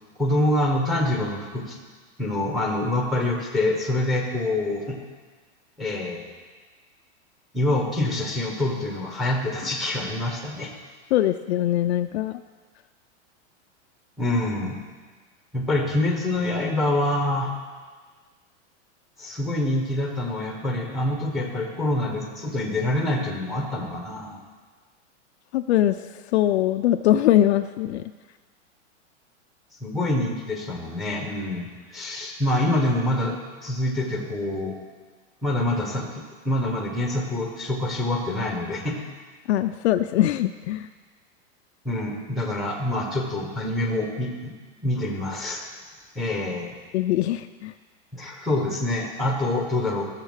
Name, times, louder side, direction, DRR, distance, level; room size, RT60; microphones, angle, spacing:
voice 1, 0.2-1.8 2.2-5.0 5.8-6.2 7.5-10.7 14.2-14.8 15.5-17.6 19.2-24.4 29.8-33.4 33.6-34.8 35.4-39.0 41.8-44.5 44.8-45.6 46.1-46.7 48.1-50.0, left 1 dB, ahead, 1 dB, 1.3 m, -26 dB
voice 2, 11.1-12.4 25.5-26.0 26.3-28.0 39.5-40.9 46.9-47.7, left 13 dB, 60° left, 9 dB, 0.6 m, -22 dB
14.5 x 6.7 x 6.5 m, 1.4 s
supercardioid pair, 165°, 36 cm